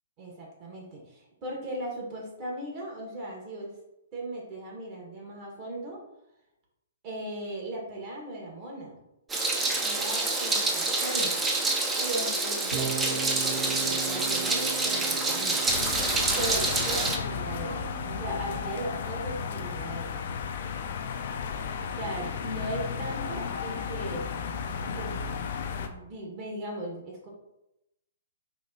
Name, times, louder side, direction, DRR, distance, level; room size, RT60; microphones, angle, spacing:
voice 1, 0.2-3.8 4.1-6.0 7.0-9.0 9.8-11.4 12.0-15.7 16.4-20.2 22.0-24.3 24.8-25.3 25.7-27.3, right 1 dB, 35° right, -2 dB, 1.3 m, -38 dB
Meow, 9.3-17.2, right 2 dB, 15° right, 0.5 m, -27 dB
sound 1, 12.7-19.0, right 6 dB, 70° right, 0.8 m, -39 dB
sound 2, 15.7-25.9, left 6 dB, 55° left, 0.4 m, -34 dB
4.3 x 2.8 x 2.7 m, 0.89 s
figure-of-eight pair, 120°, 0 cm